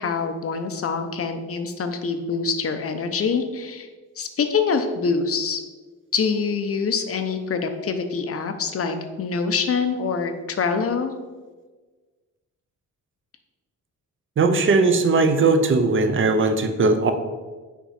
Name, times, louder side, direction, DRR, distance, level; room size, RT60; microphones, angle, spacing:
voice 1, 0.0-3.9 4.2-5.6 6.1-11.1, left 5 dB, 45° left, 7 dB, 0.7 m, -25 dB
voice 2, 14.4-17.1, right 3 dB, 40° right, 8 dB, 0.6 m, -19 dB
5.9 x 4.9 x 4.2 m, 1.3 s
wide cardioid pair, 140°, 32 cm